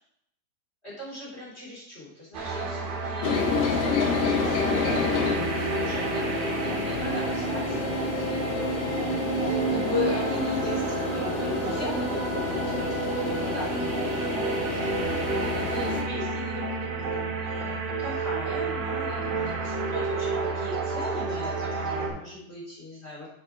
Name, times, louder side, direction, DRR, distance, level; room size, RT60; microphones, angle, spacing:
voice 1, 0.8-23.3, left 2 dB, 15° left, -6 dB, 2.7 m, -38 dB
sound 1, 2.3-22.1, right 4 dB, 70° right, 3.6 m, -30 dB
sound 2, 3.2-16.0, left 5 dB, 85° left, 3.9 m, -29 dB
8.5 x 6.4 x 4.6 m, 0.74 s
omnidirectional pair, 5.2 m